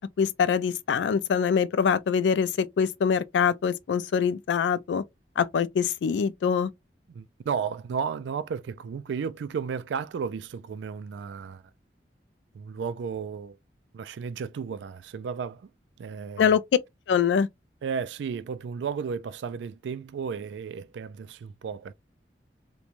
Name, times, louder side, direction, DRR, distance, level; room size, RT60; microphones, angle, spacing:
voice 1, 0.2-5.0 5.4-6.7 16.4-16.6 17.1-17.5, left 7 dB, 85° left, 0.3 m, -24 dB
voice 2, 7.1-11.6 12.5-13.6 13.9-15.7 16.0-16.6 17.8-21.9, right 6 dB, 90° right, 0.3 m, -33 dB
2.9 x 2.2 x 2.4 m
head